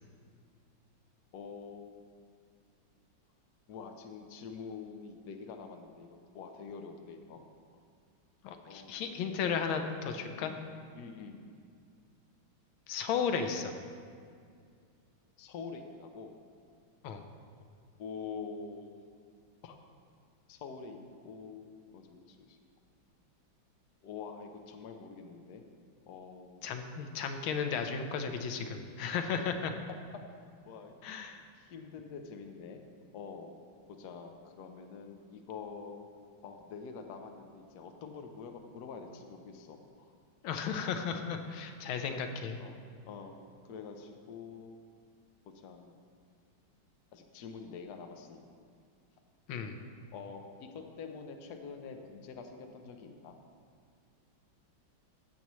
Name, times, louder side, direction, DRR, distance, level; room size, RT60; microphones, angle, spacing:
voice 1, 1.3-2.1 3.7-7.4 7.7-7.8 8.6-9.1 10.4-10.6 10.9-11.4 15.4-16.3 18.0-18.9 19.6-19.8 20.5-22.6 24.0-25.6 26.1-26.6 29.3-29.4 30.1-30.9 31.5-32.8 33.1-33.5 34.0-40.1 40.8-41.2 42.6-42.8 43.1-44.8 45.5-46.1 47.1-48.4 50.1-53.4, left 5 dB, 65° left, 4 dB, 1.2 m, -46 dB
voice 2, 8.4-10.5 12.9-13.7 17.0-17.2 26.6-29.7 31.0-31.4 40.4-42.6 49.5-49.8, left 6 dB, 90° left, 6 dB, 1.5 m, -34 dB
16.0 x 6.9 x 3.1 m, 2.2 s
omnidirectional pair, 2.2 m